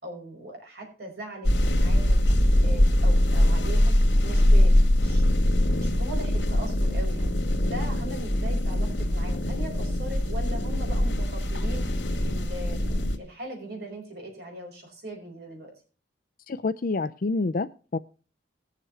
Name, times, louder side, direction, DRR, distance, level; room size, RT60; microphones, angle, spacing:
voice 1, 0.0-4.0 4.2-5.3 5.8-7.4 7.6-11.8 12.3-15.7, right 1 dB, 60° right, 1 dB, 5.2 m, -40 dB
sound 1, 1.4-13.2, left 1 dB, 75° left, 2.3 m, -22 dB
voice 2, 16.5-18.0, left 3 dB, 50° left, 12 dB, 0.5 m, -28 dB
19.5 x 7.4 x 3.3 m, 0.36 s
head